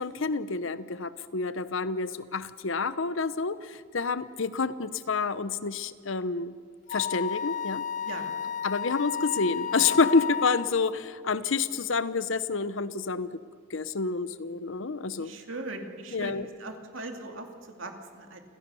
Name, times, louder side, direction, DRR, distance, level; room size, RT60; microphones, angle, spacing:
voice 1, 0.0-6.5 6.9-7.8 8.6-13.3 13.7-15.3 16.1-16.5, left 4 dB, 70° left, 14 dB, 0.9 m, -28 dB
Wind instrument woodwind instrument, 6.9-10.7, left 7 dB, 40° left, 0.6 m, -32 dB
voice 2, 15.2-18.4, right 2 dB, 70° right, 4 dB, 2.6 m, -40 dB
28.5 x 16.0 x 7.0 m, 2.1 s
head